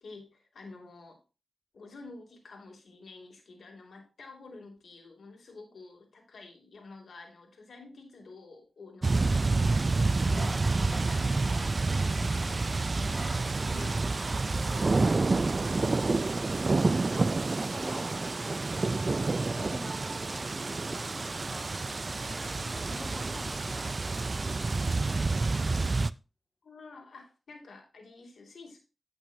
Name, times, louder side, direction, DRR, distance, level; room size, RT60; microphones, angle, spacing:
voice 1, 0.0-1.2 1.7-11.3 11.8-13.2 13.7-14.0 22.3-22.7 26.6-28.8, left 3 dB, 80° left, 2 dB, 2.8 m, -49 dB
sound 1, 9.0-26.1, right 3 dB, 45° right, 0.4 m, -28 dB
sound 2, 10.2-15.9, right 1 dB, 10° right, 3.8 m, -45 dB
voice 2, 14.5-26.0, left 2 dB, 30° left, 3 dB, 1.6 m, -49 dB
15.0 x 6.0 x 2.7 m, 0.30 s
cardioid pair, 65°, 0 cm